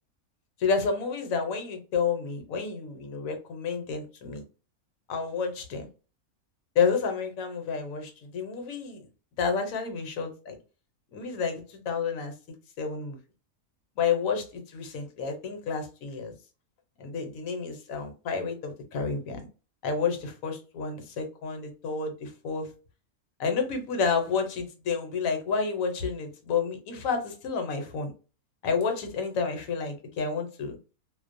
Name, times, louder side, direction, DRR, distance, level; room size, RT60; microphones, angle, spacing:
voice 1, 0.6-4.4 5.1-5.9 6.7-9.0 9.4-10.5 11.1-12.3 12.8-13.2 14.0-16.3 17.0-19.4 19.8-22.7 23.4-28.1 28.6-30.8, left 5 dB, 70° left, 1.0 m, -30 dB
2.5 x 2.0 x 2.5 m
omnidirectional pair, 1.5 m